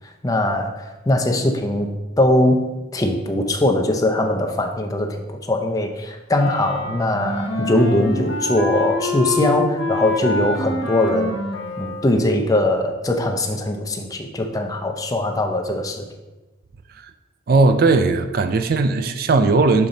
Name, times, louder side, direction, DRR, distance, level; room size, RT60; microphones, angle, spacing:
voice 1, 0.2-0.7 1.1-1.9 2.2-11.4 11.8-16.0, left 1 dB, 20° left, 4 dB, 0.5 m, -21 dB
Wind instrument woodwind instrument, 6.3-12.2, left 2 dB, 85° left, 1.0 m, -26 dB
voice 2, 17.5-19.9, right 3 dB, 50° right, 8 dB, 0.3 m, -17 dB
7.0 x 4.1 x 3.8 m, 1.1 s
head